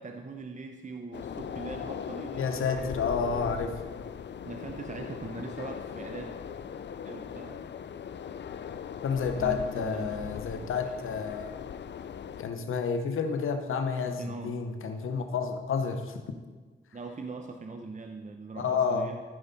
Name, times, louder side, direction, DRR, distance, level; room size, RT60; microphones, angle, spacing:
voice 1, 0.0-3.0 3.5-3.6 4.4-6.3 7.0-7.6 9.4-11.0 14.1-14.6 16.9-19.2, right 3 dB, 35° right, 4 dB, 0.8 m, -41 dB
sound 1, 1.1-12.4, left 7 dB, 60° left, 0.5 m, -39 dB
voice 2, 2.4-3.7 9.0-11.5 12.4-16.2 18.6-19.1, left 5 dB, 90° left, 7 dB, 0.8 m, -30 dB
14.0 x 5.4 x 4.0 m, 1.4 s
cardioid pair, 50°, 20 cm